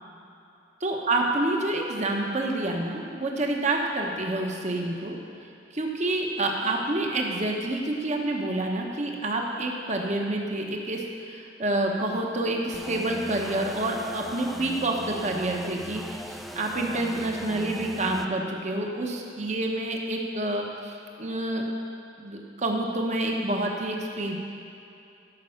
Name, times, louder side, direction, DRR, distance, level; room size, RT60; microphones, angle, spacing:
voice 1, 0.8-5.2 5.7-21.6 22.2-24.4, right 2 dB, 40° right, 1 dB, 1.1 m, -28 dB
sound 1, 12.7-18.3, equal, ahead, 0.3 m, -39 dB
13.0 x 5.4 x 6.5 m, 2.7 s
head